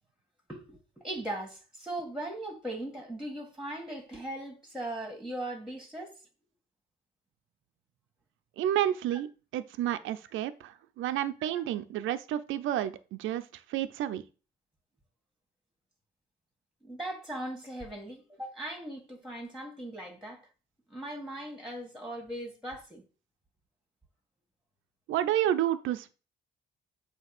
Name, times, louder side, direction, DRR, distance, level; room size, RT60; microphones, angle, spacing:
voice 1, 0.5-6.2 9.1-9.2 16.8-20.4 20.9-23.0, right 1 dB, ahead, 1.9 m, -39 dB
voice 2, 8.6-14.2 25.1-26.1, right 12 dB, 80° right, 0.6 m, -30 dB
8.1 x 2.9 x 6.0 m
cardioid pair, 90°, 20 cm